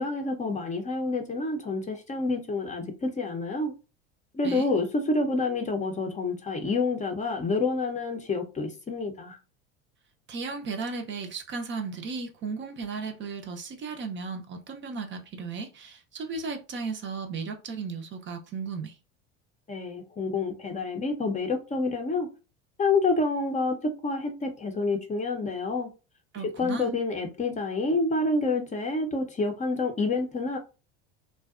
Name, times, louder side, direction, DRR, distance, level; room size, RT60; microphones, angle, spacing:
voice 1, 0.0-3.7 4.3-9.4 19.7-22.3 22.8-23.8 24.0-25.9 26.6-30.6, left 3 dB, 20° left, 0.6 m, -28 dB
voice 2, 10.3-18.9 26.3-26.9, right 4 dB, 35° right, 0.5 m, -35 dB
2.5 x 2.1 x 2.4 m
hypercardioid pair, 90°, 35 cm